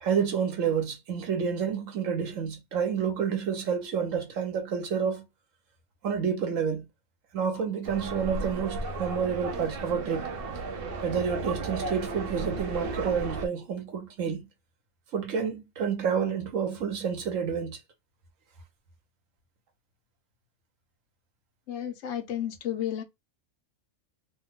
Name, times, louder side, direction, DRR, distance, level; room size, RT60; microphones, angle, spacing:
voice 1, 0.0-5.3 6.0-6.9 7.3-10.3 11.0-14.5 15.1-17.8, right 7 dB, 85° right, 1.3 m, -29 dB
sound 1, 7.8-13.5, right 3 dB, 55° right, 0.8 m, -34 dB
voice 2, 21.7-23.0, left 10 dB, 70° left, 1.0 m, -32 dB
3.0 x 2.2 x 3.4 m
omnidirectional pair, 1.3 m